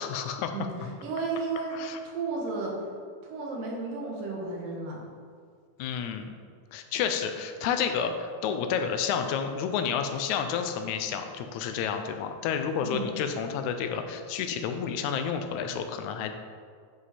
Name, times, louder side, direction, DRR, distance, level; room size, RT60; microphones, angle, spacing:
voice 1, 0.0-0.5 0.8-0.9 1.7-2.0 5.8-6.3 6.7-16.3, left 7 dB, 80° left, 7 dB, 1.7 m, -30 dB
voice 2, 1.0-2.7 3.2-5.0 12.8-13.1, right 4 dB, 85° right, -1 dB, 3.0 m, -33 dB
9.3 x 5.2 x 4.2 m, 2.1 s
omnidirectional pair, 3.8 m